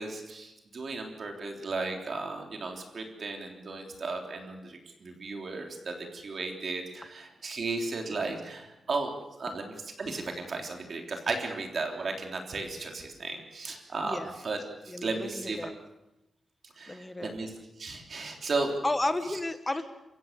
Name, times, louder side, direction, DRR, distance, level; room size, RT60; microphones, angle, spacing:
voice 1, 0.0-14.6 14.8-15.6 16.8-18.7 19.3-19.4, right 3 dB, 45° right, 2 dB, 3.4 m, -35 dB
voice 2, 14.9-15.7 16.9-17.3 18.8-19.8, left 2 dB, 15° left, 9 dB, 1.5 m, -32 dB
29.0 x 15.5 x 6.8 m, 0.96 s
wide cardioid pair, 170°, 0 cm